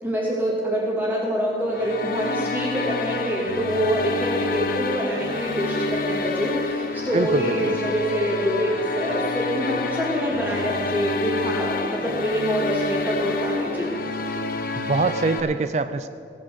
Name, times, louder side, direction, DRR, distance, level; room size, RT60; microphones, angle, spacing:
voice 1, 0.0-13.9, equal, 10° right, -6 dB, 2.9 m, -25 dB
sound 1, 1.7-15.4, left 3 dB, 50° left, 1.0 m, -28 dB
voice 2, 7.1-7.9 14.8-16.1, right 3 dB, 40° right, 11 dB, 0.4 m, -24 dB
17.0 x 6.5 x 8.1 m, 2.5 s
head